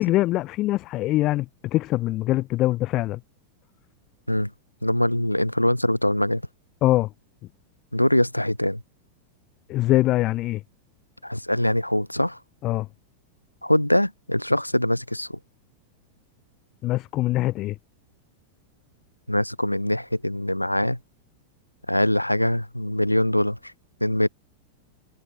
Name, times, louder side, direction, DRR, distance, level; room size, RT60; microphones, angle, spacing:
voice 1, 0.0-3.2 6.8-7.1 9.7-10.6 12.6-12.9 16.8-17.7, left 17 dB, 35° left, 4.7 m, -23 dB
voice 2, 4.8-6.4 7.9-8.8 11.2-12.4 13.6-15.4 19.3-21.0 21.9-23.6 24.0-24.3, left 1 dB, 90° left, 4.2 m, -23 dB
figure-of-eight pair, 90°, 0 cm